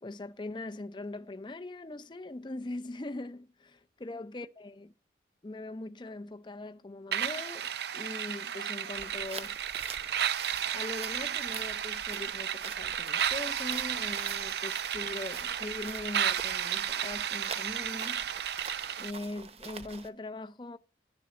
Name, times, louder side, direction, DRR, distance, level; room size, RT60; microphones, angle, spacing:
voice 1, 0.0-4.9 5.4-9.6 10.7-18.5 19.0-20.8, left 2 dB, 25° left, 0.5 m, -41 dB
sound 1, 7.1-19.1, right 9 dB, 65° right, 0.5 m, -33 dB
sound 2, 8.9-20.1, right 5 dB, 35° right, 0.8 m, -46 dB
11.5 x 3.9 x 7.6 m
head